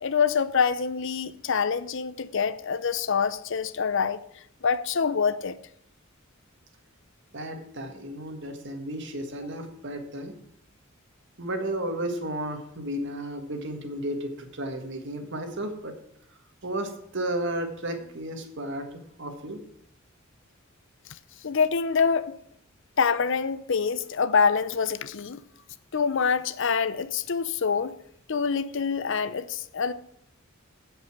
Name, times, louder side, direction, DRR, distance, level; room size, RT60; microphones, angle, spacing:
voice 1, 0.0-4.2 4.6-5.6 21.4-22.4 23.0-25.4 25.9-28.0 28.3-29.9, left 6 dB, 65° left, 0.7 m, -25 dB
voice 2, 7.3-10.4 11.4-15.9 16.6-19.6, right 1 dB, 60° right, 1.7 m, -33 dB
15.5 x 5.6 x 6.1 m
head